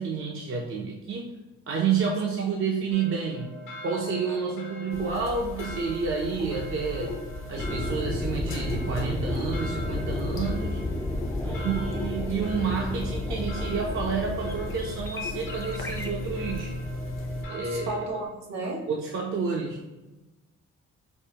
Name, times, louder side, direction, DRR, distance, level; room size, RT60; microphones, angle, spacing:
voice 1, 0.0-1.4 1.7-3.6 3.8-10.8 11.4-16.7 17.5-18.0 18.9-19.9, right 5 dB, 45° right, 0 dB, 0.5 m, -30 dB
sound 1, 2.9-18.3, left 1 dB, 85° left, 1.2 m, -43 dB
sound 2, 4.9-17.4, left 2 dB, 45° left, 0.6 m, -37 dB
sound 3, 7.6-18.1, left 2 dB, 10° left, 0.3 m, -33 dB
voice 2, 11.2-11.7 17.5-18.9, right 2 dB, 60° right, 1 dB, 1.0 m, -35 dB
5.4 x 2.0 x 2.7 m, 1.1 s
cardioid pair, 90°, 30 cm